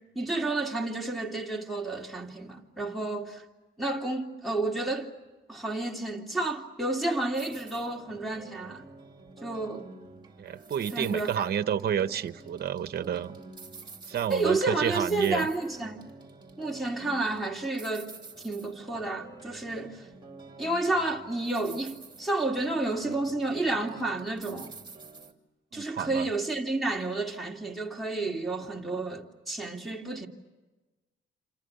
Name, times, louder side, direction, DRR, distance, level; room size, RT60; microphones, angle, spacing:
voice 1, 0.1-3.4 3.8-5.1 5.5-8.9 9.4-9.9 10.9-11.5 14.3-16.0 16.6-18.1 18.4-20.1 20.6-24.7 25.7-30.3, right 2 dB, ahead, 3.2 m, -31 dB
sound 1, 7.3-25.3, right 3 dB, 20° right, 2.7 m, -48 dB
voice 2, 10.4-13.4 14.1-15.5 25.7-26.3, right 9 dB, 55° right, 1.1 m, -30 dB
28.0 x 27.5 x 6.9 m
cardioid pair, 90°, 20 cm